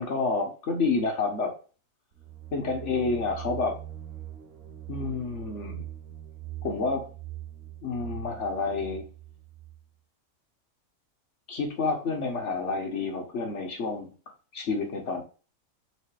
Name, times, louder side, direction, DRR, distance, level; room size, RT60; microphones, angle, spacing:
voice 1, 0.0-1.5 2.5-3.8 4.9-5.8 6.6-7.1 7.8-9.1 11.5-14.1 14.5-15.2, left 4 dB, 55° left, 1.7 m, -29 dB
sound 1, 2.1-9.8, right 12 dB, 90° right, 1.5 m, -42 dB
5.1 x 4.1 x 4.8 m
omnidirectional pair, 1.5 m